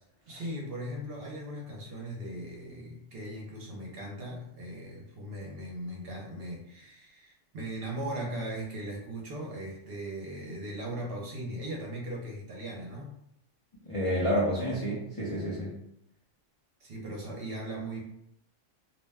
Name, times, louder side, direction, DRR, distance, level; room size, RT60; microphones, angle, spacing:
voice 1, 0.3-13.2 16.8-18.0, right 1 dB, 55° right, -2 dB, 0.8 m, -38 dB
voice 2, 13.9-15.8, equal, 40° left, -7 dB, 0.5 m, -29 dB
2.5 x 2.1 x 3.4 m, 0.76 s
omnidirectional pair, 1.3 m